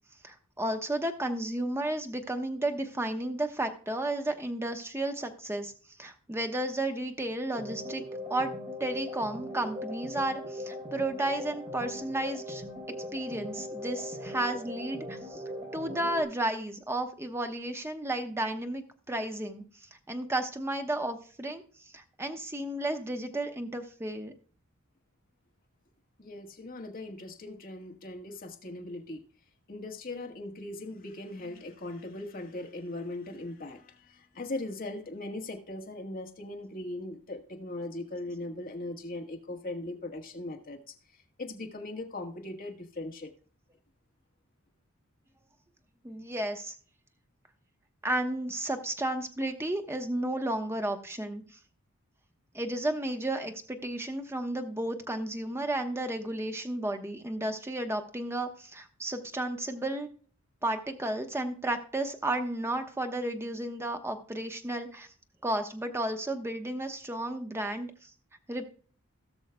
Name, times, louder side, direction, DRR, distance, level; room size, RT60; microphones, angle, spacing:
voice 1, 0.2-5.7 6.0-8.0 8.3-8.5 8.8-12.6 12.9-15.4 15.7-19.6 20.1-21.6 21.9-24.3 46.0-46.7 48.0-51.4 52.5-60.1 60.6-65.1 65.4-68.1 68.5-68.7, right 1 dB, 10° right, 6 dB, 0.9 m, -33 dB
sound 1, 7.5-16.2, left 1 dB, 35° right, 3.7 m, -39 dB
voice 2, 26.2-29.2 29.7-43.3, left 2 dB, 45° left, 3 dB, 1.4 m, -39 dB
17.5 x 6.3 x 2.2 m, 0.43 s
head